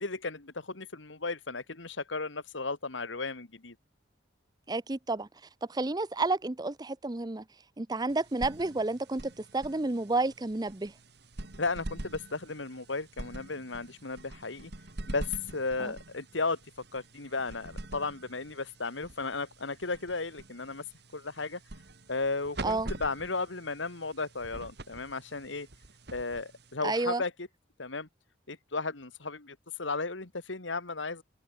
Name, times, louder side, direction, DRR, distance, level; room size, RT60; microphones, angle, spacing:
voice 1, 0.0-3.8 11.6-14.7 15.1-16.6 16.9-20.8 21.1-21.6 22.1-25.7 26.1-27.5 27.8-28.1 28.5-31.2, left 3 dB, 85° left, 2.1 m, -35 dB
voice 2, 4.7-5.3 5.7-7.4 7.8-10.9 15.8-15.9 22.6-22.9 26.8-27.2, right 2 dB, 20° right, 0.7 m, -30 dB
sound 1, 8.1-27.0, right 1 dB, 60° right, 2.2 m, -45 dB
head